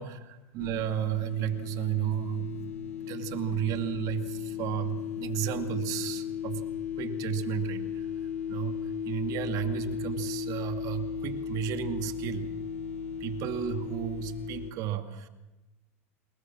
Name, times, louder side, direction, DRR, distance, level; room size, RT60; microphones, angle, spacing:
voice 1, 0.0-2.7 3.1-6.6 7.0-8.1 8.5-12.5 13.2-15.3, right 11 dB, 55° right, 8 dB, 2.4 m, -33 dB
sound 1, 0.6-14.7, left 8 dB, 85° left, 1.1 m, -36 dB
28.0 x 21.0 x 6.1 m, 1.0 s
hypercardioid pair, 105°, 7 cm